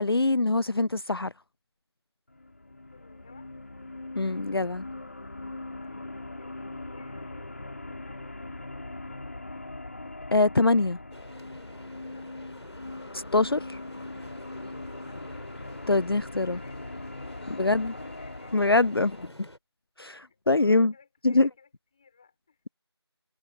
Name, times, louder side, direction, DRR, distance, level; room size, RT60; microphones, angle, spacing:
voice 1, 0.0-1.3 4.2-4.8 10.3-11.0 13.1-13.8 15.9-16.6 17.6-17.9 18.5-19.3 20.0-20.9 21.2-21.5, left 3 dB, 60° left, 0.4 m, -24 dB
sound 1, 2.3-19.3, left 2 dB, 35° left, 3.1 m, -41 dB
voice 2, 2.9-3.6 5.8-8.8 9.1-9.8 12.0-12.3 14.9-15.5 16.5-17.0 17.3-17.7 18.0-18.9 20.0-22.6, left 5 dB, 15° left, 7.0 m, -57 dB
sound 2, 11.1-19.6, left 1 dB, 80° left, 4.8 m, -49 dB
figure-of-eight pair, 170°, 14 cm